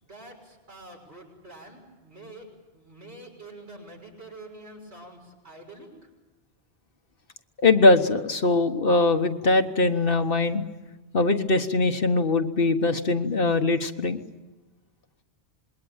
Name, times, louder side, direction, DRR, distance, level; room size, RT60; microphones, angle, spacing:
voice 1, 0.0-2.5 2.7-5.9, right 2 dB, 80° right, 0 dB, 6.7 m, -46 dB
voice 2, 7.6-10.6 11.1-14.2, left 3 dB, 55° left, 7 dB, 1.4 m, -21 dB
27.0 x 21.5 x 8.9 m, 1.1 s
omnidirectional pair, 1.1 m